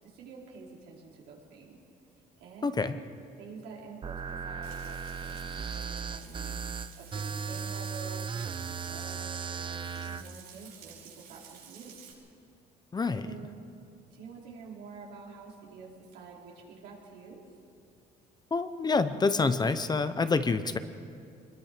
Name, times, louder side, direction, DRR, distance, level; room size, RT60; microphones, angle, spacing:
voice 1, 0.0-1.8 2.4-2.9 3.4-6.6 7.0-12.0 13.2-13.6 14.1-17.4, right 5 dB, 85° right, -4 dB, 4.9 m, -48 dB
voice 2, 2.6-3.0 12.9-13.3 18.5-20.8, left 4 dB, 25° left, 11 dB, 0.9 m, -27 dB
sound 1, 4.0-10.2, right 5 dB, 30° right, 0.6 m, -36 dB
Frying (food), 4.6-12.1, right 7 dB, 70° right, 7.1 m, -52 dB
24.5 x 21.5 x 5.1 m, 2.4 s
cardioid pair, 110°, 17 cm